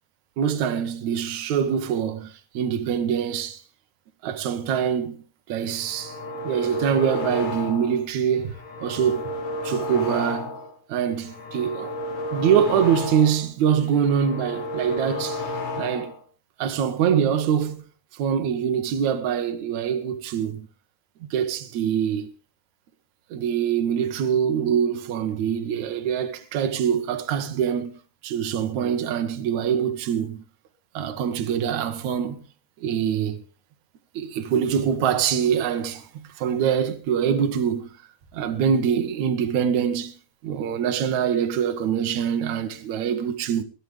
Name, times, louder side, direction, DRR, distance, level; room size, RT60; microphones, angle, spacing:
voice 1, 0.4-3.6 4.2-5.2 5.5-6.2 6.4-8.5 8.8-9.2 9.6-10.6 10.9-11.9 12.3-15.5 15.8-16.1 16.6-17.8 18.1-20.7 21.3-22.3 23.3-27.9 28.2-30.4 30.9-32.4 32.8-33.4 34.2-36.1 36.4-37.9 38.3-40.1 40.4-43.6, right 8 dB, 70° right, 1.7 m, -24 dB
sound 1, 5.7-8.0 8.4-10.8 11.1-13.5 13.8-16.2, left 2 dB, 45° left, 5.0 m, -32 dB
21.5 x 12.0 x 3.4 m
omnidirectional pair, 5.4 m